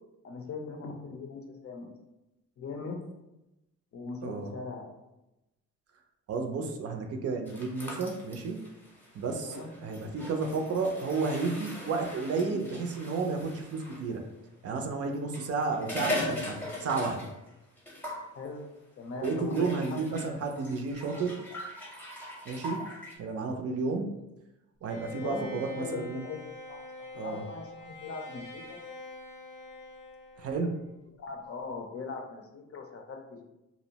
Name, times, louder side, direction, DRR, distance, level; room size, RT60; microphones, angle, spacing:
voice 1, 0.2-1.9 2.6-3.0 3.9-4.9 9.4-9.9 18.3-18.7 19.0-20.2 25.2-26.8 27.2-28.8 31.2-33.4, left 4 dB, 50° left, 3 dB, 0.5 m, -40 dB
voice 2, 4.2-4.5 6.3-8.6 9.1-14.2 14.6-17.3 19.2-21.4 22.5-22.8 23.2-24.1 24.8-26.2 27.1-27.4 30.4-30.8, right 4 dB, 55° right, 4 dB, 0.4 m, -32 dB
sound 1, 7.5-14.1 15.1-17.5 17.8-18.3 19.2-23.2, left 1 dB, 5° left, 0.7 m, -40 dB
Bowed string instrument, 24.9-30.9, left 2 dB, 85° left, 0.7 m, -45 dB
2.6 x 2.0 x 2.7 m, 0.95 s
cardioid pair, 90°, 30 cm